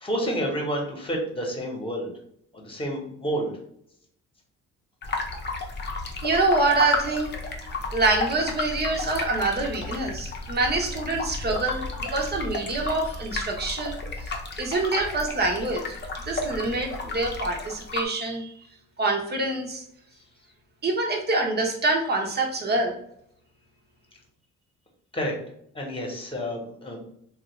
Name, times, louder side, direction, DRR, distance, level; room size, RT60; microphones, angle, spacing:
voice 1, 0.0-2.1 2.5-3.5 25.1-25.3 25.7-27.0, equal, 15° left, 0 dB, 1.2 m, -29 dB
sound 1, 5.0-18.1, left 3 dB, 35° left, 0.7 m, -32 dB
voice 2, 6.2-7.4 7.9-15.9 16.3-18.5 19.0-19.8 20.8-23.0, right 3 dB, 35° right, 1 dB, 0.9 m, -26 dB
3.1 x 2.5 x 3.1 m, 0.70 s
cardioid pair, 90°, 30 cm